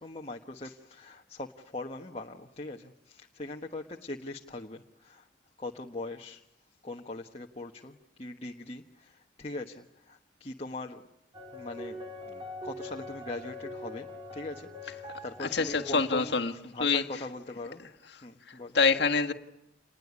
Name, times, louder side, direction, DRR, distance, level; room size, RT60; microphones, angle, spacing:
voice 1, 0.0-5.3 5.6-6.5 6.8-11.0 11.5-17.8 18.2-18.8, left 2 dB, 30° left, 1.2 m, -41 dB
sound 1, 11.3-16.4, left 2 dB, 25° right, 4.1 m, -43 dB
voice 2, 15.4-16.5 16.8-17.0 18.5-19.3, left 4 dB, 60° left, 1.6 m, -26 dB
28.0 x 20.5 x 9.6 m
head